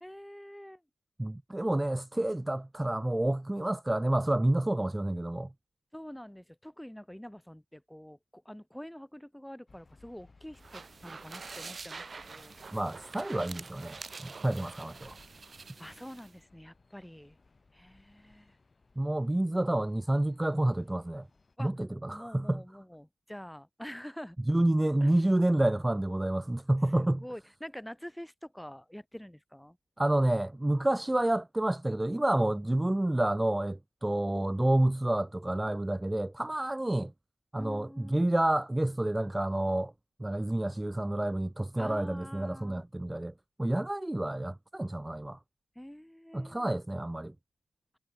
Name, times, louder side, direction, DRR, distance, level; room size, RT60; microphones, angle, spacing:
voice 1, 0.0-0.8 5.9-12.6 15.8-17.4 17.7-18.6 21.6-21.7 22.1-24.4 25.0-25.3 27.0-29.8 37.6-38.2 41.8-42.8 45.8-46.8, equal, 5° left, 0.9 m, -46 dB
voice 2, 1.2-5.5 12.7-14.0 14.2-15.2 19.0-21.2 21.6-22.6 24.5-27.2 30.0-37.1 37.5-39.9 40.2-43.3 43.6-45.4 46.3-47.3, right 1 dB, 15° right, 0.3 m, -29 dB
sound 1, 9.7-21.6, left 3 dB, 40° left, 3.6 m, -63 dB
sound 2, 10.5-16.3, right 4 dB, 50° right, 2.6 m, -46 dB
supercardioid pair, 40°, 0 cm